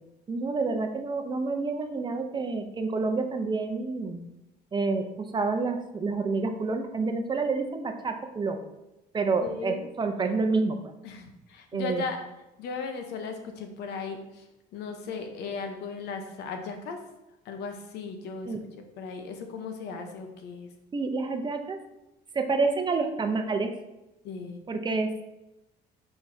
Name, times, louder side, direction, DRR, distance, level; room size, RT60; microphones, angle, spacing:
voice 1, 0.3-4.2 4.7-8.6 9.1-10.8 11.7-12.0 18.5-18.6 20.9-21.8 22.3-23.7 24.7-25.2, right 4 dB, 25° right, 6 dB, 0.7 m, -28 dB
voice 2, 9.4-9.9 11.0-12.2 12.6-14.5 14.7-17.0 17.4-20.7 24.2-24.6, left 5 dB, 80° left, 5 dB, 0.9 m, -37 dB
7.4 x 4.6 x 2.7 m, 0.94 s
cardioid pair, 110°, 17 cm